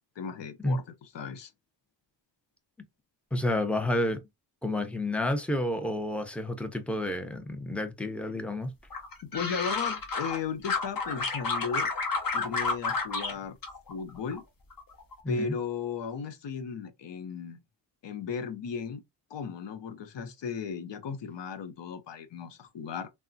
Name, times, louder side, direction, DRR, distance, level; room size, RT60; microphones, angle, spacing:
voice 1, 0.2-0.8 1.1-1.5 9.2-11.9 12.3-13.6 13.9-14.4 15.3-17.6 18.0-19.0 19.3-23.1, left 6 dB, 70° left, 0.7 m, -36 dB
voice 2, 3.3-4.2 4.6-8.7 15.2-15.5, left 1 dB, 5° left, 0.6 m, -30 dB
sound 1, 8.9-10.4 10.6-13.3 13.6-14.4 14.7-15.1, left 4 dB, 50° left, 1.0 m, -31 dB
3.4 x 2.1 x 2.6 m
cardioid pair, 65°, 45 cm